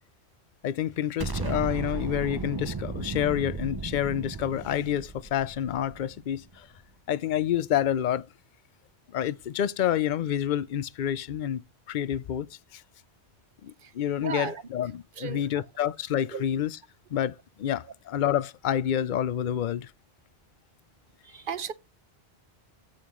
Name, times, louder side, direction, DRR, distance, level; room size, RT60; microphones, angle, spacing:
voice 1, 0.6-6.7 7.1-8.3 9.1-12.8 13.6-16.8 17.1-19.9, left 10 dB, 55° left, 0.6 m, -28 dB
Explosion, 1.2-6.4, right 4 dB, 25° right, 0.6 m, -35 dB
voice 2, 14.2-14.6 15.2-15.6 16.3-16.4 21.2-21.7, right 6 dB, 55° right, 0.9 m, -35 dB
15.0 x 5.6 x 3.1 m
omnidirectional pair, 1.1 m